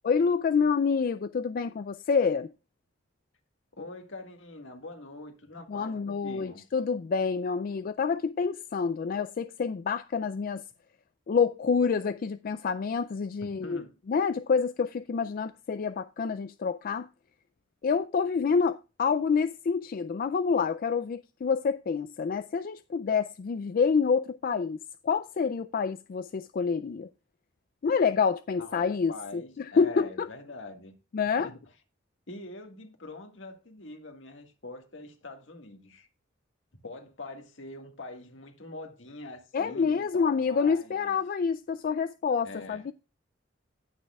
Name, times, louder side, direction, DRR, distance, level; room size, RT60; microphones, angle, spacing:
voice 1, 0.0-2.5 5.7-10.6 11.3-13.8 14.1-17.1 17.8-27.1 27.8-30.3 31.1-31.5 39.5-42.9, left 5 dB, 50° left, 0.4 m, -27 dB
voice 2, 3.7-6.6 13.4-13.9 28.6-30.9 31.4-31.6 32.3-36.1 36.8-41.1 42.4-42.9, left 2 dB, 75° left, 1.8 m, -44 dB
19.0 x 6.4 x 2.3 m
head